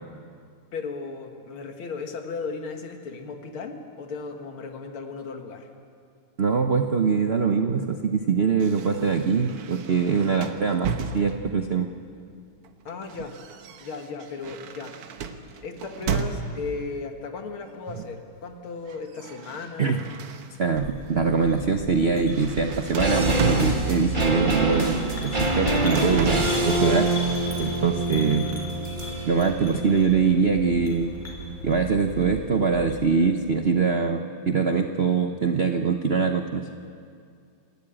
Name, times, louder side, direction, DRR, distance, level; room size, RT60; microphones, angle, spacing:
voice 1, 0.7-5.7 12.9-13.4 13.8-15.0 15.6-20.1, left 4 dB, 70° left, 5 dB, 2.4 m, -36 dB
voice 2, 6.4-11.9 19.8-20.0 20.6-25.1 25.4-27.1 27.6-28.5 29.2-31.1 31.6-36.7, right 5 dB, 60° right, 5 dB, 0.6 m, -23 dB
sound 1, 8.6-11.7 12.6-16.8 17.9-18.2 18.5-20.8 21.3-21.5 21.9-24.3 25.2-26.7, right 5 dB, 85° right, 2.0 m, -34 dB
sound 2, 20.7-33.1, left 1 dB, 5° left, 4.4 m, -39 dB
sound 3, 22.7-32.1 32.3-32.4, right 2 dB, 25° right, 1.7 m, -26 dB
29.5 x 13.0 x 8.9 m, 2.3 s
omnidirectional pair, 2.4 m